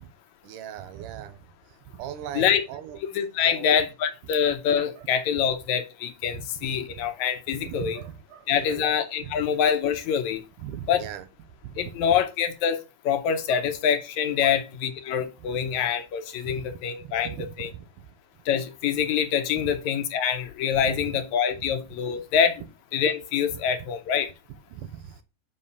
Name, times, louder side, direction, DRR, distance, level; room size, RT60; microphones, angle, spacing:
voice 1, 0.4-1.4 1.9-3.0 3.4-3.7 5.0-5.1 6.3-7.1 7.5-8.9 9.2-9.4 10.6-11.3 11.6-11.8 12.1-12.2 13.5-13.6 14.4-14.6 16.5-16.8 17.0-18.1 19.5-19.8 20.9-21.2 21.6-21.7 23.5-23.6 24.7-25.2, right 10 dB, 85° right, 2.4 m, -39 dB
voice 2, 3.1-8.0 8.5-10.4 10.9-11.0 11.8-12.8 13.0-17.7 18.5-22.6 22.9-24.3, left 8 dB, 75° left, 2.1 m, -25 dB
5.6 x 5.6 x 5.5 m
omnidirectional pair, 3.6 m